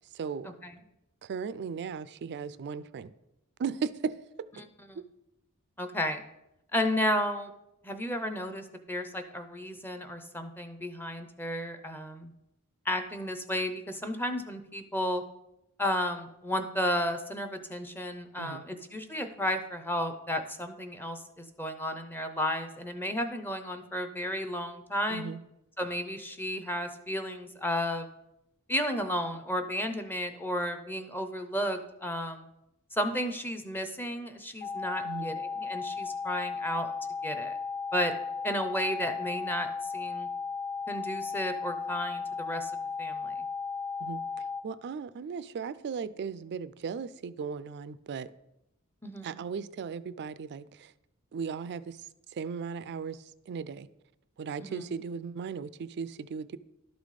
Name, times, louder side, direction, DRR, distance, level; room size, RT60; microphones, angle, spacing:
voice 1, 0.1-0.5 1.2-3.1 3.6-4.2 4.9-5.0 18.4-18.6 25.1-25.4 35.0-35.3 44.0-48.3 49.2-50.9 51.3-53.9 54.4-56.6, right 6 dB, 50° right, 0.3 m, -37 dB
voice 2, 5.8-6.2 6.7-7.5 7.8-12.3 12.9-15.2 15.8-25.3 25.8-28.1 28.7-32.5 32.9-36.9 37.2-37.6 37.9-38.1 38.4-40.3 40.9-42.7 43.0-43.3 49.0-49.4 54.6-54.9, equal, 10° left, 0.6 m, -33 dB
sound 1, 34.6-44.6, left 5 dB, 50° left, 1.3 m, -35 dB
12.0 x 4.1 x 4.8 m
head